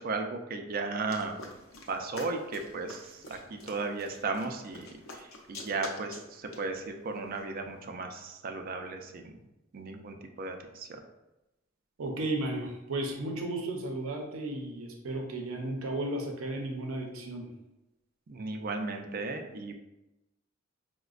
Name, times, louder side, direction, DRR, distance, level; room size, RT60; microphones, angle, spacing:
voice 1, 0.0-1.4 1.9-9.3 9.7-11.0 18.3-19.7, right 3 dB, 45° right, 5 dB, 0.4 m, -35 dB
sound 1, 1.1-7.9, left 2 dB, 70° left, 0.6 m, -48 dB
voice 2, 12.0-17.5, right 2 dB, 90° right, 2 dB, 0.6 m, -34 dB
4.9 x 2.1 x 2.4 m, 0.95 s
head